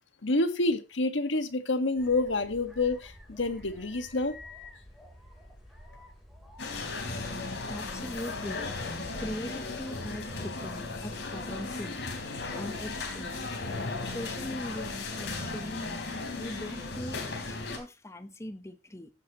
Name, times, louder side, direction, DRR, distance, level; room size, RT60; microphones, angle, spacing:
voice 1, 0.2-4.3, left 2 dB, 80° left, 1.6 m, -28 dB
sound 1, 2.0-16.8, left 1 dB, ahead, 3.7 m, -51 dB
sound 2, 6.6-17.8, left 3 dB, 65° left, 4.2 m, -36 dB
voice 2, 7.7-8.6 9.2-13.4 13.9-19.1, left 1 dB, 15° left, 1.1 m, -41 dB
15.0 x 9.0 x 3.0 m
head